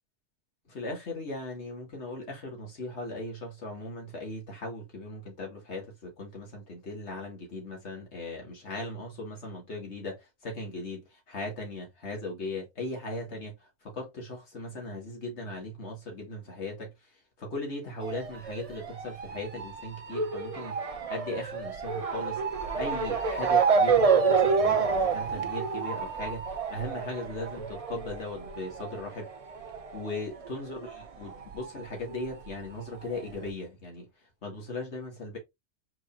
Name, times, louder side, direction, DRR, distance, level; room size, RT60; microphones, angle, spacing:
voice 1, 0.7-29.3 29.9-35.4, left 2 dB, 75° left, 1.9 m, -38 dB
Motor vehicle (road) / Siren, 18.0-31.0 31.3-32.5 33.1-33.2 33.5-33.6, right 5 dB, 40° right, 0.6 m, -28 dB
4.7 x 3.7 x 2.4 m
omnidirectional pair, 1.2 m